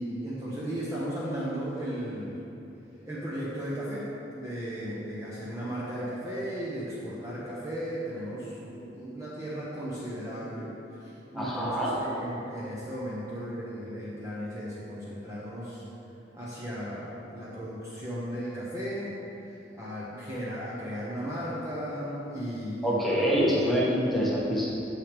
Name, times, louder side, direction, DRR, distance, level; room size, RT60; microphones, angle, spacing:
voice 1, 0.0-2.4 3.0-10.7 11.0-15.8 16.3-19.2 19.4-23.2, equal, 15° right, -8 dB, 1.0 m, -35 dB
voice 2, 11.3-12.0 22.8-24.7, equal, ahead, -7 dB, 1.3 m, -25 dB
9.2 x 6.6 x 3.5 m, 2.9 s
head